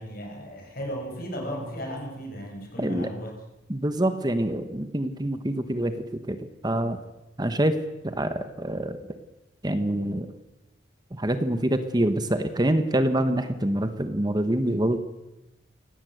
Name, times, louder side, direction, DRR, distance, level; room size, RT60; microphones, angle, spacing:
voice 1, 0.0-3.3, equal, 55° left, 2 dB, 7.0 m, -35 dB
voice 2, 2.8-3.1 3.7-6.4 6.6-7.0 7.4-7.8 8.0-9.0 9.6-10.3 11.1-15.0, right 1 dB, 25° right, 9 dB, 1.4 m, -25 dB
24.5 x 18.0 x 8.0 m, 0.99 s
head